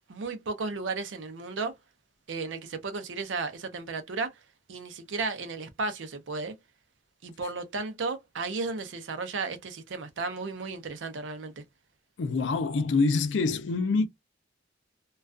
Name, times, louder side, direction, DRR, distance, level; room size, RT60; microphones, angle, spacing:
voice 1, 0.1-1.7 2.3-4.3 4.7-6.5 7.2-11.6, right 4 dB, 85° right, 0.5 m, -34 dB
voice 2, 12.2-14.1, left 3 dB, 75° left, 0.4 m, -25 dB
2.3 x 2.2 x 2.3 m
head